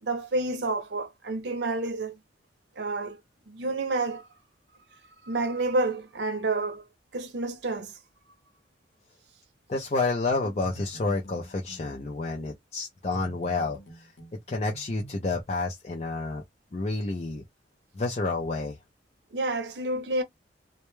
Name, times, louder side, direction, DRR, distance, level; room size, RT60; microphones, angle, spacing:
voice 1, 0.0-2.2 2.8-3.2 3.5-4.3 5.2-6.9 7.1-8.0 19.3-20.2, right 2 dB, 65° right, 0.7 m, -29 dB
voice 2, 9.7-14.1 14.5-16.4 16.7-17.4 18.0-18.8, left 3 dB, 35° left, 0.5 m, -29 dB
sound 1, 10.4-11.9 13.1-15.4, right 1 dB, 90° left, 0.8 m, -47 dB
2.2 x 2.1 x 3.0 m
head